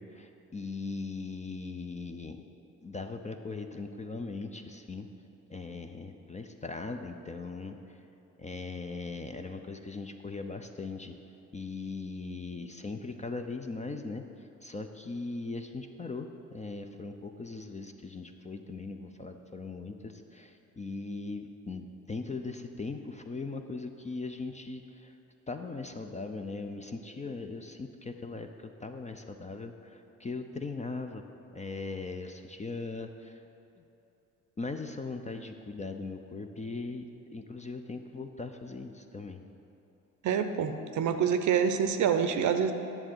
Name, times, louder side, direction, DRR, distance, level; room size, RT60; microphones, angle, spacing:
voice 1, 0.0-2.4 2.8-5.1 5.5-7.8 8.4-11.1 11.5-14.2 14.6-25.1 25.5-31.2 31.5-33.4 33.8-33.9 34.6-39.4, left 3 dB, 15° left, 6 dB, 0.5 m, -39 dB
voice 2, 40.2-42.7, right 7 dB, 45° right, 8 dB, 0.7 m, -26 dB
10.5 x 6.7 x 4.5 m, 2.9 s
figure-of-eight pair, 45°, 41 cm